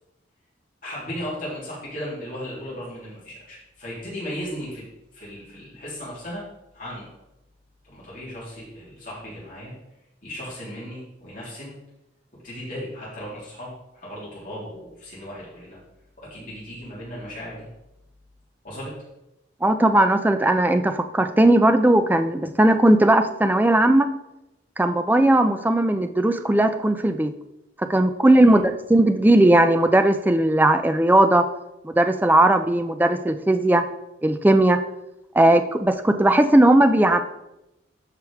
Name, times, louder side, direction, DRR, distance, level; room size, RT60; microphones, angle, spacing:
voice 1, 0.8-4.8 5.1-6.4 6.7-7.1 7.8-9.7 10.2-11.7 12.4-13.7 14.0-15.8 16.2-17.6 18.6-18.9 28.4-28.6, equal, 45° left, -8 dB, 3.2 m, -36 dB
voice 2, 19.6-24.1 24.8-27.3 27.8-31.5 31.8-33.9 34.2-34.8 35.3-37.2, right 1 dB, 10° right, 9 dB, 0.4 m, -18 dB
12.5 x 4.7 x 3.6 m, 0.90 s
head